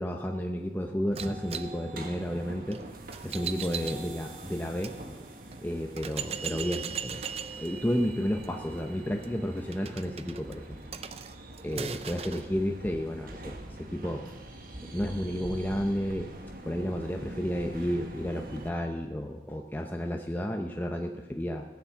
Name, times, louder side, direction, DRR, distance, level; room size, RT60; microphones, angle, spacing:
voice 1, 0.0-2.8 3.2-5.3 5.6-7.2 7.6-10.8 11.6-14.3 14.8-16.3 16.7-21.6, equal, 10° left, 3 dB, 0.6 m, -32 dB
sound 1, 1.1-18.7, right 1 dB, 50° right, 1.4 m, -45 dB
sound 2, 1.2-5.0 5.5-5.6 6.0-12.5, right 7 dB, 35° right, 0.5 m, -40 dB
16.5 x 7.1 x 7.2 m, 1.2 s
head